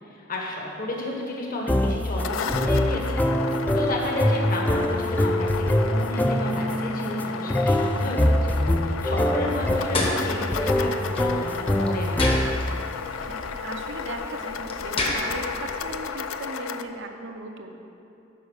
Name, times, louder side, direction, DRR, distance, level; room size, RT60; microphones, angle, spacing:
voice 1, 0.3-3.2 3.7-12.3, left 1 dB, 45° left, -1 dB, 1.4 m, -32 dB
sound 1, 1.7-12.8, left 1 dB, 10° left, 0.3 m, -24 dB
sound 2, 1.9-16.8, left 6 dB, 85° left, 0.4 m, -34 dB
sound 3, 9.6-16.0, left 2 dB, 30° left, 1.1 m, -32 dB
voice 2, 13.1-17.9, right 2 dB, 65° right, 4 dB, 0.8 m, -38 dB
9.7 x 5.4 x 6.3 m, 2.9 s
head